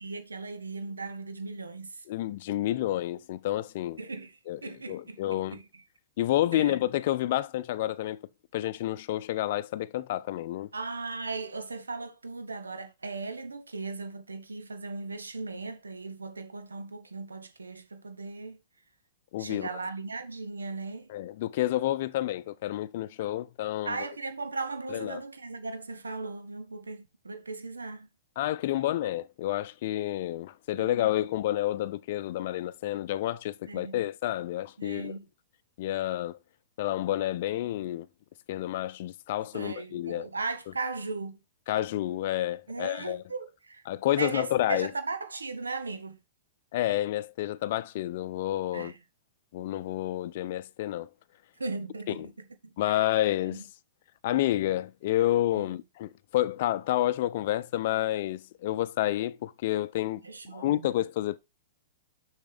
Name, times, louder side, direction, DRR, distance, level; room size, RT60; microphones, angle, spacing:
voice 1, 0.0-2.0 4.0-4.3 4.6-5.6 6.5-6.8 10.7-18.6 19.4-21.1 23.8-28.1 30.8-31.1 33.7-34.0 34.8-35.3 39.5-41.4 42.7-43.8 44.2-46.2 48.7-49.0 51.6-52.3 52.6-53.1 53.5-53.6 55.6-55.7 60.2-60.9, right 3 dB, 85° right, 1.3 m, -37 dB
voice 2, 2.1-4.0 4.5-5.6 6.2-8.2 8.5-10.7 19.3-19.7 21.1-24.0 24.9-25.2 28.4-35.1 35.8-36.4 36.8-38.1 38.5-40.3 41.7-43.2 43.9-44.9 46.7-48.9 49.5-51.1 52.2-52.3 52.8-53.6 54.2-60.2 60.5-61.4, left 14 dB, 55° left, 0.5 m, -29 dB
6.8 x 6.4 x 3.4 m
hypercardioid pair, 110°, 0 cm